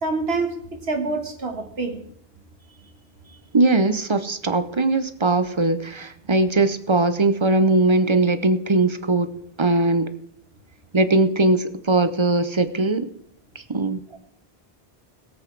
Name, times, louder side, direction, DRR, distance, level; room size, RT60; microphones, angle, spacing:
voice 1, 0.0-2.0, right 3 dB, 80° right, 4 dB, 1.7 m, -26 dB
voice 2, 3.5-9.3 9.6-10.1 10.9-13.1 13.7-14.0, right 2 dB, 30° right, 11 dB, 0.7 m, -20 dB
17.5 x 8.0 x 4.6 m, 0.67 s
omnidirectional pair, 1.0 m